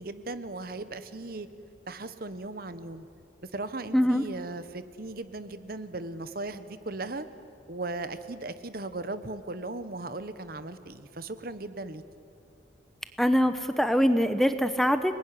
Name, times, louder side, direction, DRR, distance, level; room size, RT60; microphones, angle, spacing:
voice 1, 0.0-1.5 1.9-3.1 3.4-7.3 7.7-12.0, right 2 dB, 50° right, 12 dB, 1.1 m, -37 dB
voice 2, 3.9-4.2 13.2-15.1, equal, ahead, 9 dB, 0.8 m, -23 dB
29.5 x 20.0 x 9.9 m, 2.5 s
head